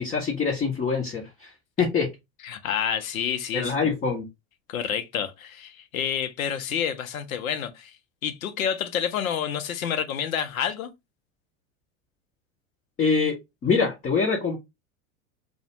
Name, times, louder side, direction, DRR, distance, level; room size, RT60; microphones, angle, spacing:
voice 1, 0.0-1.5 1.8-2.1 3.5-4.3 13.0-13.4 13.6-14.6, left 5 dB, 20° left, 0.5 m, -24 dB
voice 2, 2.4-3.7 4.7-8.0 8.2-10.9, left 8 dB, 85° left, 0.6 m, -29 dB
2.3 x 2.1 x 2.8 m
hypercardioid pair, 90°, 41 cm